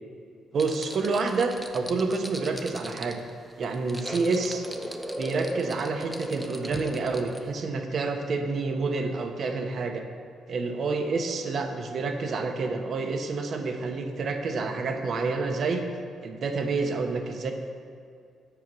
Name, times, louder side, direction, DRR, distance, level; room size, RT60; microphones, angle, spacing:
sound 1, 0.5-7.6, equal, 5° right, 0.7 m, -37 dB
voice 1, 0.5-3.2 3.6-4.6 5.2-10.0 10.5-15.9 16.2-17.5, right 4 dB, 55° right, 5 dB, 1.0 m, -28 dB
7.9 x 6.0 x 6.1 m, 2.3 s
cardioid pair, 90°, 0 cm